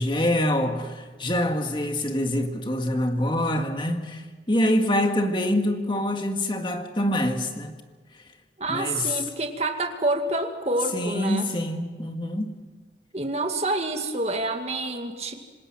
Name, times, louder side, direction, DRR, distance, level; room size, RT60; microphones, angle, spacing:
voice 1, 0.0-7.7 8.7-9.2 10.9-12.6, left 1 dB, 30° left, 1.8 m, -25 dB
voice 2, 8.6-11.5 13.1-15.3, right 2 dB, 35° right, 2.1 m, -27 dB
26.5 x 20.0 x 6.1 m
head